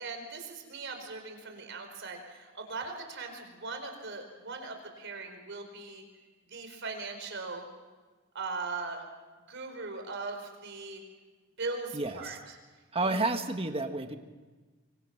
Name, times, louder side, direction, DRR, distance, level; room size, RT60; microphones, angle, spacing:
voice 1, 0.0-6.0 6.5-7.6 8.3-9.0 9.5-11.0 11.6-12.4 13.0-13.2, right 3 dB, 60° right, 4 dB, 4.8 m, -39 dB
voice 2, 11.9-12.4 12.9-14.2, right 3 dB, 30° right, 6 dB, 1.7 m, -30 dB
25.5 x 25.0 x 6.1 m, 1.3 s
head